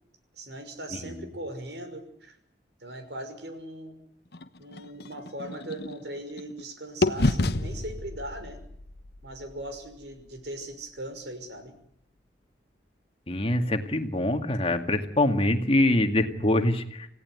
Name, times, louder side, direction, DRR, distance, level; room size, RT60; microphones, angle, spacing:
voice 1, 0.3-2.4 2.8-4.0 4.6-8.6 9.2-11.7, right 1 dB, 75° right, 7 dB, 5.9 m, -39 dB
sound 1, 4.3-6.6 7.0-11.0, left 2 dB, 60° left, 1.2 m, -31 dB
voice 2, 13.3-17.1, left 1 dB, 30° left, 7 dB, 2.1 m, -24 dB
28.0 x 17.0 x 9.6 m, 0.70 s
head